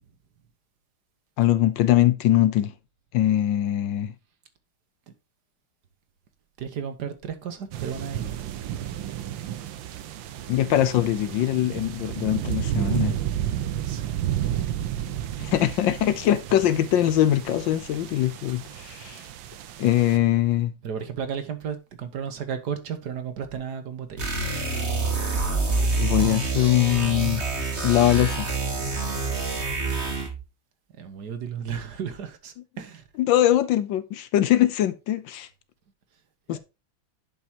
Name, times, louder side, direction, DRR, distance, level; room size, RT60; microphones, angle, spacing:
voice 1, 1.4-2.7 3.1-4.1 10.5-13.2 15.4-19.2 19.8-20.7 26.0-27.4 27.8-28.5 33.2-35.5 36.5-36.6, left 13 dB, 75° left, 1.3 m, -22 dB
voice 2, 6.6-8.5 13.8-14.2 19.8-20.3 20.8-24.3 31.0-33.0 36.5-36.6, right 7 dB, 55° right, 1.6 m, -34 dB
sound 1, 7.7-20.2, right 11 dB, 75° right, 1.5 m, -32 dB
sound 2, 24.2-30.4, right 3 dB, 35° right, 2.0 m, -27 dB
10.5 x 5.5 x 2.8 m
omnidirectional pair, 2.2 m